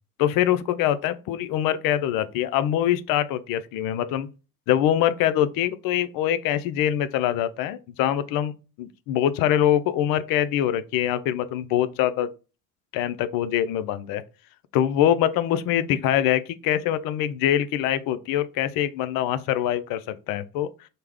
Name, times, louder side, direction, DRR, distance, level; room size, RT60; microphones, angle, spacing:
voice 1, 0.2-4.3 4.7-12.3 12.9-14.2 14.7-20.7, left 11 dB, 55° left, 0.4 m, -24 dB
3.2 x 2.1 x 3.4 m
figure-of-eight pair, 45°, 43 cm